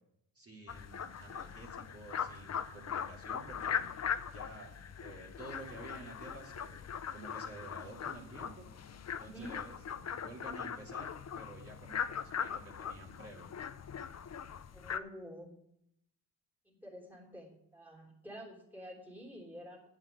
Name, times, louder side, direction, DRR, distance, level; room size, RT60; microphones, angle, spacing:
voice 1, 0.3-3.8 4.3-6.8 7.1-8.7 9.2-13.5, right 2 dB, 40° right, -3 dB, 2.6 m, -51 dB
sound 1, 0.7-15.0, left 8 dB, 45° left, 0.6 m, -40 dB
voice 2, 9.2-9.6 14.7-15.5 16.6-19.8, equal, 5° right, -2 dB, 3.2 m, -49 dB
8.2 x 7.7 x 8.1 m, 0.78 s
cardioid pair, 90°, 37 cm